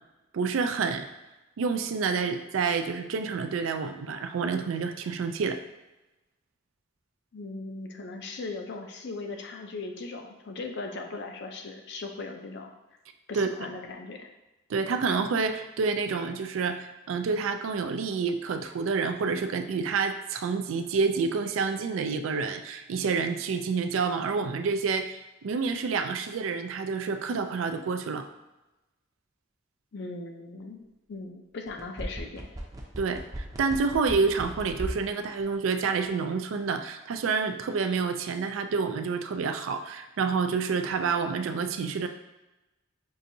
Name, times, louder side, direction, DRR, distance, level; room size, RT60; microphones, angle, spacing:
voice 1, 0.3-1.1 1.6-5.6 13.3-13.5 14.7-28.3 33.0-42.1, right 5 dB, 80° right, 7 dB, 0.3 m, -28 dB
voice 2, 7.3-12.7 13.3-14.3 29.9-30.8 31.1-32.5, left 3 dB, 60° left, 3 dB, 0.5 m, -38 dB
sound 1, 31.7-35.1 35.4-35.5, right 1 dB, 20° right, 0.5 m, -37 dB
5.5 x 2.6 x 2.6 m, 1.0 s
head